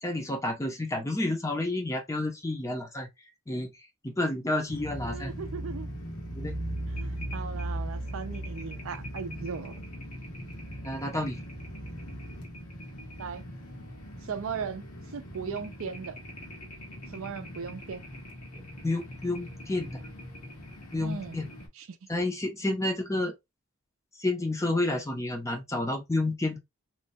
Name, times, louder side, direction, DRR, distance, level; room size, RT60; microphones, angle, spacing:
voice 1, 0.0-3.1 3.5-3.7 4.0-5.3 6.3-6.6 10.8-11.4 18.5-20.0 20.9-21.5 22.1-23.3 24.2-26.6, left 2 dB, 15° left, 0.6 m, -30 dB
sound 1, 4.7-21.7, equal, 80° left, 1.3 m, -39 dB
voice 2, 5.1-5.9 6.9-9.8 13.2-13.4 14.2-14.8 15.1-16.2 17.1-18.0 21.0-21.4 21.8-21.9, right 6 dB, 65° right, 0.4 m, -37 dB
3.1 x 2.2 x 2.6 m
head